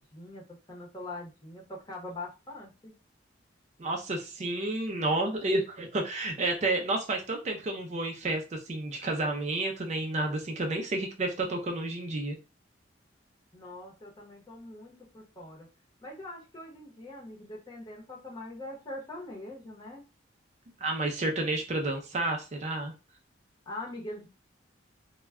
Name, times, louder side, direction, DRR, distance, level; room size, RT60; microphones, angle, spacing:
voice 1, 0.0-2.9 13.5-15.7 16.0-20.0 23.7-24.3, left 2 dB, 20° left, -2 dB, 0.8 m, -43 dB
voice 2, 3.8-12.3 20.8-22.9, right 2 dB, 35° right, 3 dB, 0.4 m, -30 dB
2.2 x 2.1 x 3.4 m, 0.31 s
head